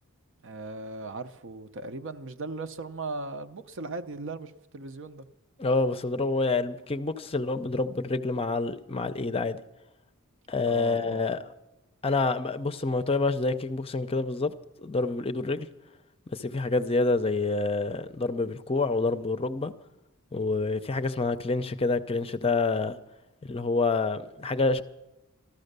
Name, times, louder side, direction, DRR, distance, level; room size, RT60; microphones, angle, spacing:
voice 1, 0.4-5.3 10.7-11.2, right 3 dB, 60° right, 0.7 m, -38 dB
voice 2, 5.6-9.6 10.5-11.4 12.0-14.5 14.8-15.7 16.3-19.7 20.3-23.0 23.4-24.8, left 3 dB, 25° left, 0.5 m, -27 dB
14.0 x 13.0 x 6.7 m
head